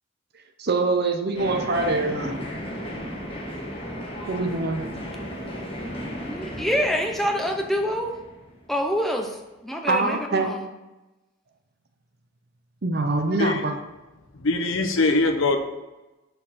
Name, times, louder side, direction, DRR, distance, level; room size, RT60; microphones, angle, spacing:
voice 1, 0.6-2.5 4.3-4.9 9.9-10.6 12.8-13.8, right 3 dB, 45° right, 7 dB, 0.6 m, -24 dB
sound 1, 1.3-9.0, equal, 25° left, 1.2 m, -35 dB
voice 2, 5.9-8.1 8.7-9.4 9.6-10.7, equal, ahead, 2 dB, 0.6 m, -26 dB
voice 3, 14.4-15.6, left 3 dB, 70° left, 6 dB, 0.8 m, -22 dB
6.4 x 4.6 x 5.7 m, 1.1 s
head